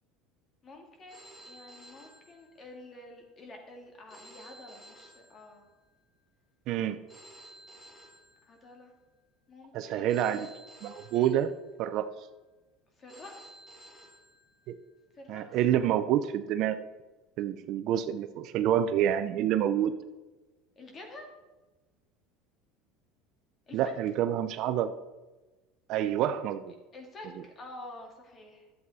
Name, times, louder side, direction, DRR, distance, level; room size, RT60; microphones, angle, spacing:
voice 1, 0.6-5.7 8.4-8.9 9.5-10.1 11.1-11.3 13.0-13.4 15.1-15.4 20.8-21.3 23.7-23.9 26.9-28.7, left 2 dB, 25° left, 2 dB, 2.2 m, -48 dB
Telephone, 1.1-3.0 4.1-6.0 7.1-9.0 10.1-11.9 13.1-14.9, right 1 dB, 10° left, 2.1 m, -53 dB
voice 2, 6.7-7.0 9.7-10.5 10.8-11.5 11.8-12.1 14.7-14.8 15.3-16.8 17.4-19.9 23.7-24.9 25.9-26.7, right 10 dB, 50° right, 11 dB, 0.5 m, -27 dB
12.0 x 7.7 x 4.1 m, 1.2 s
supercardioid pair, 140°, 0 cm